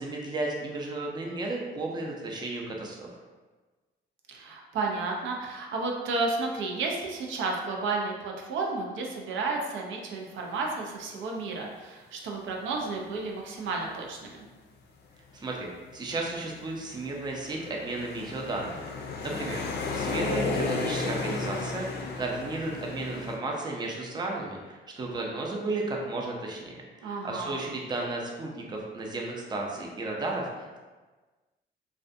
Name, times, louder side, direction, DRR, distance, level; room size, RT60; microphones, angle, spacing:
voice 1, 0.0-3.1 15.3-18.8 19.2-30.8, right 2 dB, 20° right, -1 dB, 0.4 m, -34 dB
voice 2, 4.3-14.5 27.0-27.6, right 3 dB, 75° right, 0 dB, 0.4 m, -32 dB
sound 1, 15.3-15.4 16.1-23.4, left 3 dB, 55° left, 0.4 m, -33 dB
2.5 x 2.2 x 2.5 m, 1.3 s
cardioid pair, 90°, 20 cm